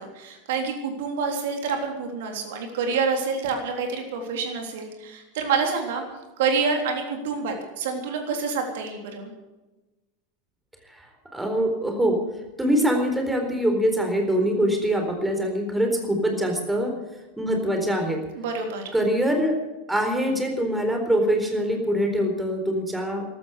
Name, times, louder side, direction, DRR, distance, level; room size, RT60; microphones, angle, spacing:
voice 1, 0.0-6.0 6.4-9.3 18.4-18.9, right 5 dB, 60° right, 3 dB, 3.4 m, -27 dB
voice 2, 11.3-12.2 12.6-16.9 17.4-18.2 18.9-19.6 19.9-23.2, equal, 5° right, 3 dB, 4.1 m, -23 dB
15.0 x 13.0 x 6.6 m, 1.1 s
figure-of-eight pair, 85°, 0 cm